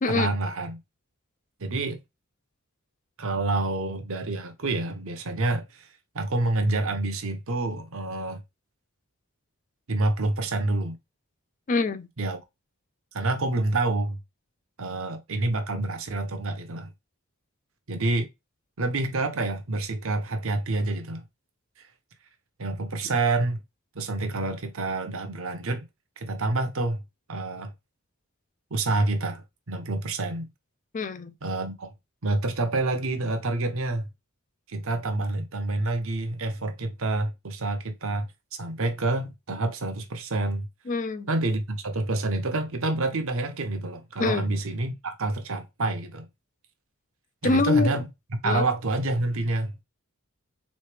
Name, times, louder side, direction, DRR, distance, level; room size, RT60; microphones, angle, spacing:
voice 1, 0.1-0.8 1.6-2.0 3.2-5.9 6.1-8.4 9.9-11.0 12.2-12.4 13.1-14.2 14.8-16.9 17.9-18.3 18.8-21.2 21.8-21.9 22.6-23.6 23.9-25.8 26.2-27.0 27.3-27.7 28.7-30.5 31.4-31.9 32.2-34.1 34.7-38.3 38.6-40.7 41.3-46.3 47.4-49.8, right 2 dB, 65° right, 0.8 m, -28 dB
voice 2, 11.7-12.1 30.9-31.3 40.9-41.3 44.2-44.5 47.4-47.9 48.4-48.6, left 3 dB, 35° left, 0.4 m, -24 dB
3.8 x 3.2 x 3.2 m
head